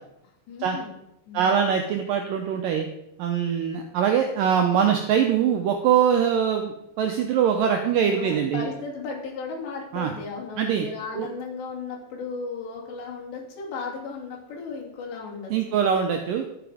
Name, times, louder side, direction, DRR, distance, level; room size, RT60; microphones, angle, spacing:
voice 1, 0.5-1.0 1.3-1.5 8.1-15.8, left 4 dB, 80° left, -2 dB, 4.9 m, -35 dB
voice 2, 1.3-2.9 3.2-8.7 9.9-10.1 10.6-10.9 11.1-11.3 15.5-16.5, right 8 dB, 85° right, 4 dB, 2.0 m, -23 dB
12.5 x 7.0 x 5.0 m, 0.83 s
omnidirectional pair, 5.0 m